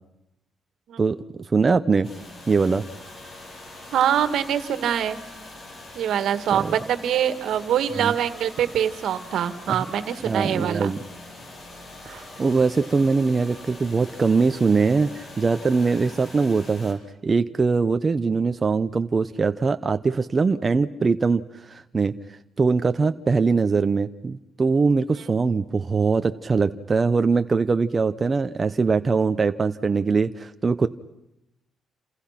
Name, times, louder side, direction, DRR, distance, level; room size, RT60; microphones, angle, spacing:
voice 1, 1.0-2.1 2.5-2.8 6.5-6.7 8.0-8.1 9.7-9.8 10.2-11.0 12.1-22.2 22.6-30.9, right 4 dB, 30° right, 9 dB, 0.9 m, -22 dB
sound 1, 2.0-16.9, left 2 dB, 45° left, 7.7 m, -43 dB
voice 2, 3.9-5.2 6.0-10.9 12.1-12.2 25.1-25.3, right 9 dB, 75° right, 11 dB, 2.0 m, -24 dB
29.5 x 27.5 x 5.9 m, 0.86 s
cardioid pair, 90°, 0 cm